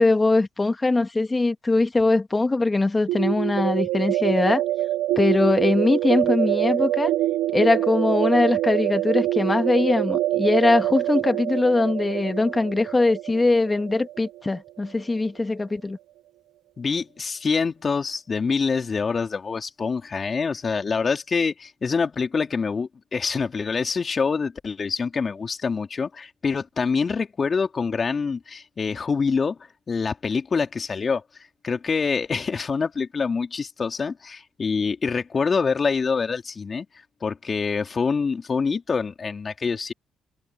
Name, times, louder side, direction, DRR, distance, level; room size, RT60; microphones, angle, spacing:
voice 1, 0.0-4.6 5.2-7.1 7.5-16.0, left 2 dB, 25° left, 1.9 m, -21 dB
sound 1, 3.1-14.8, right 14 dB, 80° right, 0.6 m, -25 dB
voice 2, 16.8-29.6 29.9-31.2 31.6-36.9 37.2-39.9, left 5 dB, 40° left, 3.2 m, -25 dB
supercardioid pair, 65°, 0 cm